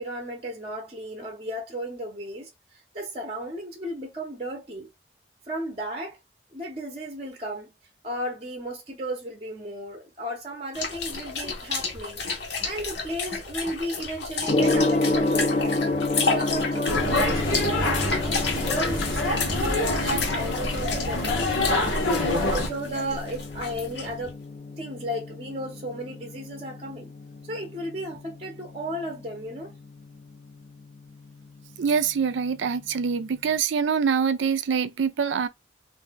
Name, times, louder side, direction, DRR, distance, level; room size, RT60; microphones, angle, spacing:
voice 1, 0.0-2.5 2.9-4.9 5.5-6.2 6.5-7.7 8.0-15.8 16.2-18.0 18.2-21.8 22.2-24.3 24.8-27.1 27.4-29.7, right 1 dB, 30° right, 0.6 m, -34 dB
sound 1, 10.7-24.3, left 4 dB, 65° left, 0.8 m, -32 dB
Gong, 14.4-33.5, left 2 dB, 35° left, 0.4 m, -31 dB
sound 2, 16.9-22.7, left 1 dB, 85° left, 1.1 m, -26 dB
voice 2, 31.8-35.5, right 6 dB, 80° right, 0.4 m, -24 dB
2.6 x 2.2 x 3.9 m
head